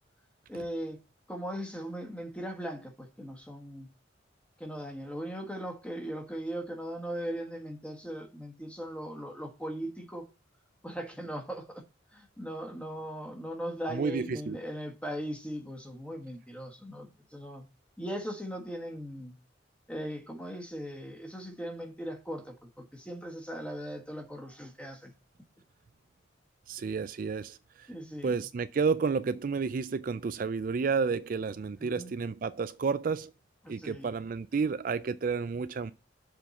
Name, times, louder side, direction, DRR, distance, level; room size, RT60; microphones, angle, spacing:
voice 1, 0.5-1.0 1.3-3.9 4.6-10.2 10.8-11.8 12.1-17.7 18.0-19.4 19.9-25.1 27.9-28.4 31.8-32.1 33.6-34.1, equal, 5° left, 1.4 m, -39 dB
voice 2, 13.9-14.6 26.7-27.9 28.2-33.3 33.7-35.9, right 5 dB, 45° right, 0.3 m, -31 dB
6.9 x 4.6 x 6.9 m
head